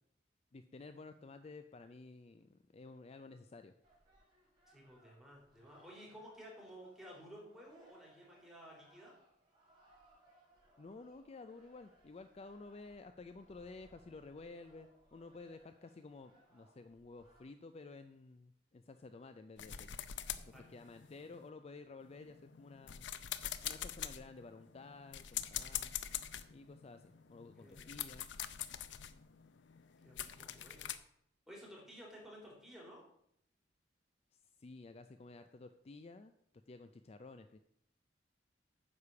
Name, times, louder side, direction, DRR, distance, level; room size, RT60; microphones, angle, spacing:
voice 1, 0.5-3.7 10.8-20.1 20.3-20.4 20.7-23.0 23.6-26.0 26.5-28.3 34.6-36.3 36.7-37.6, left 3 dB, 35° left, 9 dB, 0.4 m, -53 dB
sound 1, 3.8-17.4, right 1 dB, 25° right, 3.8 m, -68 dB
voice 2, 4.7-9.1 20.4-20.7 27.5-28.1 30.0-30.9 31.5-33.0, equal, 5° right, -3 dB, 3.4 m, -54 dB
sound 2, 19.6-21.5 22.0-31.0, left 10 dB, 75° left, 0.6 m, -45 dB
9.6 x 5.0 x 6.9 m, 0.73 s
head